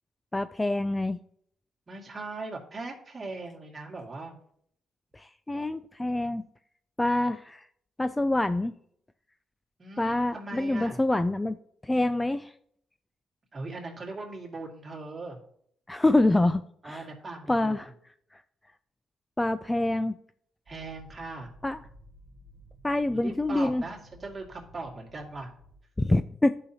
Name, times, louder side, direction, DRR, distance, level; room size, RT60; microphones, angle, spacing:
voice 1, 0.3-1.2 5.1-6.4 7.0-7.6 8.0-8.7 10.0-11.6 11.8-12.5 15.9-17.1 17.5-17.9 19.4-20.1 21.6-21.8 22.8-23.8 26.0-26.5, left 2 dB, 15° left, 12 dB, 0.3 m, -26 dB
voice 2, 1.9-4.3 9.8-11.0 13.5-15.4 16.8-17.8 20.7-21.5 23.1-25.5, right 3 dB, 30° right, -2 dB, 2.3 m, -39 dB
sound 1, 20.7-25.7, equal, 55° right, 1.8 m, -54 dB
12.0 x 5.7 x 2.9 m, 0.67 s
cardioid pair, 90°, 0 cm